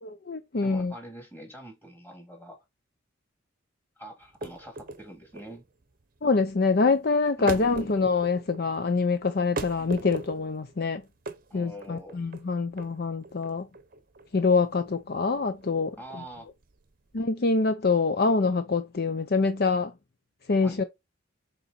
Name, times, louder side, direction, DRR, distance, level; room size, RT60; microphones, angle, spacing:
voice 1, 0.0-0.9 6.2-11.0 11.5-13.7 14.3-16.0 17.1-19.9 20.5-20.8, left 4 dB, 50° left, 0.6 m, -25 dB
voice 2, 0.6-2.6 4.0-5.7 7.4-7.9 9.8-10.1 11.5-12.2 16.0-16.5 20.6-20.8, right 1 dB, 10° left, 2.6 m, -44 dB
sound 1, 4.2-17.2, right 2 dB, 45° right, 0.7 m, -40 dB
6.8 x 4.0 x 4.1 m
head